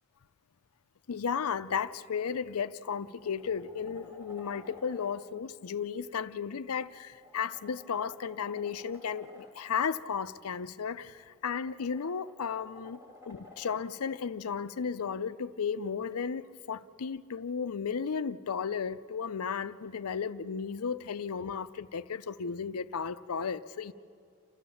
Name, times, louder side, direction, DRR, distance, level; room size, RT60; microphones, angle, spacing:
voice 1, 1.1-13.0 13.3-23.9, left 6 dB, 90° left, 0.5 m, -34 dB
sound 1, 2.8-5.1 6.8-9.5 11.0-13.8 16.1-16.2, left 2 dB, 15° right, 3.1 m, -54 dB
28.5 x 15.0 x 7.0 m
head